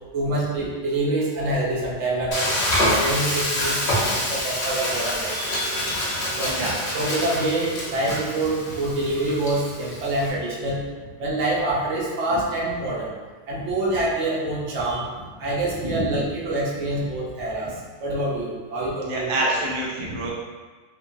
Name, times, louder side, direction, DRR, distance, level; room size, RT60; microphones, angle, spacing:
voice 1, 0.1-6.6 6.9-10.8 11.2-13.2 13.5-15.1 15.4-19.5, right 2 dB, 75° right, -5 dB, 1.0 m, -26 dB
Frying (food), 2.3-10.3, left 1 dB, 70° left, 1.0 m, -26 dB
voice 2, 6.4-6.8 15.8-16.1 19.0-20.3, right 1 dB, 60° right, -3 dB, 0.3 m, -27 dB
2.9 x 2.2 x 2.6 m, 1.4 s
omnidirectional pair, 1.2 m